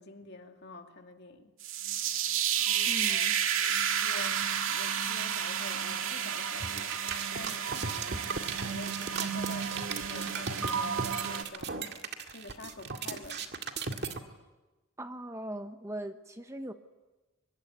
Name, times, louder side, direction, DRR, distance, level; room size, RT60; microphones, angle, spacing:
voice 1, 0.0-1.5 2.6-3.3 4.0-11.9 12.3-13.5, left 2 dB, 50° left, 4 dB, 2.5 m, -48 dB
sound 1, 1.6-11.4, right 8 dB, 70° right, 2.0 m, -31 dB
voice 2, 2.9-3.4 15.0-16.7, right 1 dB, 15° right, 7 dB, 1.0 m, -40 dB
sound 2, 6.6-14.2, right 4 dB, 50° right, 2.0 m, -37 dB
24.5 x 21.5 x 9.8 m, 1.1 s
head